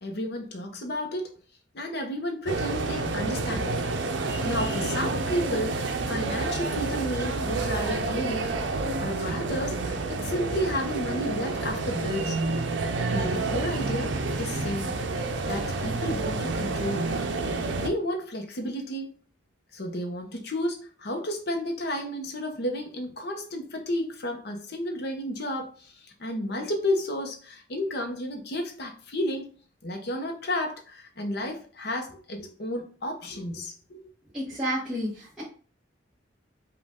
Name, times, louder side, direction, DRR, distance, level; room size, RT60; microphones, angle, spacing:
voice 1, 0.0-1.3 1.7-3.8 4.2-8.5 9.0-12.4 13.1-15.0 15.5-17.1 17.8-19.1 19.7-29.5 29.8-34.0, left 1 dB, 55° left, 0.8 m, -32 dB
sound 1, 2.5-17.9, right 3 dB, 65° right, 0.6 m, -29 dB
voice 2, 34.3-35.4, equal, 5° right, 1.4 m, -30 dB
5.2 x 2.4 x 3.6 m
head